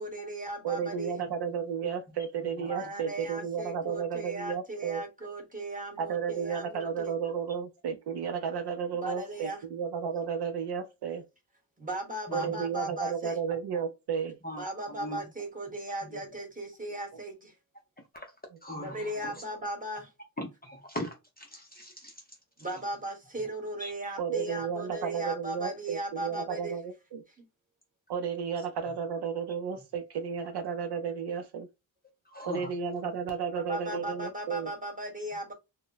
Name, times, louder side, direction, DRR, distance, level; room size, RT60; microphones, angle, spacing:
voice 1, 0.0-1.1 2.5-7.2 9.0-9.6 11.8-13.4 14.6-17.5 18.8-20.1 22.6-26.8 27.4-27.5 33.5-35.5, right 1 dB, 20° right, 1.1 m, -37 dB
voice 2, 0.6-5.0 6.0-11.2 12.3-14.4 18.8-18.9 24.2-27.2 28.1-31.7 32.5-34.7, right 7 dB, 60° right, 0.5 m, -33 dB
voice 3, 12.3-12.6 14.4-15.2 16.0-16.1 18.1-18.3 18.6-19.3 20.4-22.1 23.8-23.9 32.3-32.7 33.9-34.0, left 1 dB, 20° left, 0.5 m, -40 dB
2.1 x 2.1 x 3.8 m
cardioid pair, 105°, 45 cm